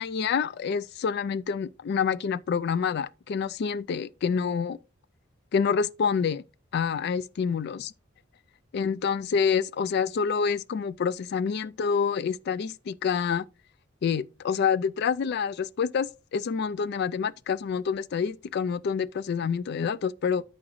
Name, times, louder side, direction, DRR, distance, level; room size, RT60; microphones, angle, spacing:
voice 1, 0.0-4.8 5.5-6.4 6.7-7.9 8.7-13.4 14.0-20.4, left 6 dB, 55° left, 0.3 m, -27 dB
12.5 x 5.0 x 3.0 m
head